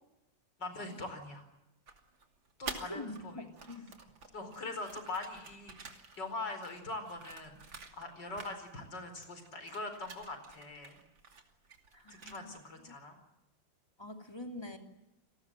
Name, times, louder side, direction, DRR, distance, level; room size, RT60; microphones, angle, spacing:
voice 1, 0.6-1.5 2.6-3.5 4.3-11.0 12.1-13.2, left 2 dB, 65° left, 8 dB, 5.2 m, -42 dB
sound 1, 1.9-3.2 3.5-8.1 8.4-9.0 9.2-12.7, right 4 dB, 90° right, 3.5 m, -49 dB
voice 2, 2.8-4.0 8.3-8.5 11.9-12.9 14.0-14.8, left 1 dB, 15° left, 4 dB, 2.9 m, -45 dB
29.0 x 19.0 x 7.6 m, 0.93 s
omnidirectional pair, 2.0 m